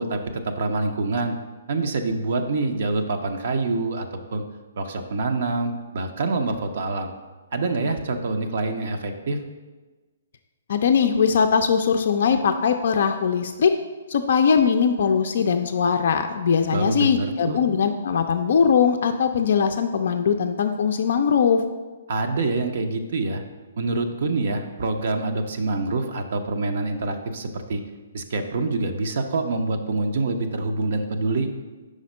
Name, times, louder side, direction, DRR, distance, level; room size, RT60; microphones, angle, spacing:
voice 1, 0.0-1.4 1.7-4.4 4.8-7.1 7.5-9.4 16.7-17.6 22.1-23.4 23.8-27.8 28.1-31.5, right 3 dB, 60° right, 6 dB, 0.5 m, -26 dB
voice 2, 10.7-13.7 14.1-21.6, left 6 dB, 60° left, 5 dB, 0.3 m, -20 dB
5.0 x 4.2 x 5.3 m, 1.3 s
hypercardioid pair, 135°, 0 cm